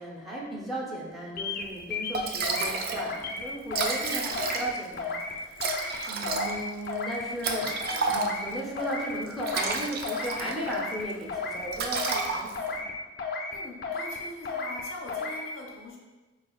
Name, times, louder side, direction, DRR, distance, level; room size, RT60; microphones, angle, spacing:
voice 1, 0.0-5.6 6.1-7.8 8.0-12.8, right 1 dB, ahead, -4 dB, 0.6 m, -36 dB
sound 1, 1.4-1.6 1.9-2.7 3.0-3.4 3.7-4.1 4.3-4.7 5.0-5.3 5.6-6.0 6.2-6.6 6.9-7.2 7.5-7.9 8.1-8.5 8.8-9.1 9.4-9.8 10.0-10.4 10.7-11.0 11.3-11.6 11.9-12.3 12.6-12.9 13.2-13.5 13.8-14.2 14.4-14.8 15.1-15.4, left 4 dB, 50° left, 0.5 m, -33 dB
Liquid, 1.8-1.9 2.1-3.1 3.4-3.5 3.6-4.9 5.6-8.6 9.3-10.8 11.1-11.3 11.7-12.8, right 4 dB, 50° right, 0.4 m, -31 dB
voice 2, 4.0-4.4 13.5-16.0, left 2 dB, 85° left, 0 dB, 0.8 m, -42 dB
4.5 x 3.3 x 2.3 m, 1.2 s
head